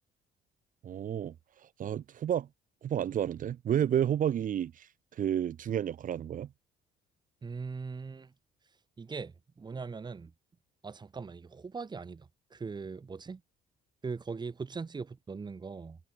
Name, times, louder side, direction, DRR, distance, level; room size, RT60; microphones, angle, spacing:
voice 1, 0.8-1.3 1.8-2.5 2.8-4.9 5.1-6.5, right 10 dB, 50° right, 2.7 m, -30 dB
voice 2, 7.4-8.3 9.0-10.3 10.8-13.4 14.0-16.0, right 4 dB, 25° right, 3.0 m, -40 dB
cardioid pair, 110°, 17 cm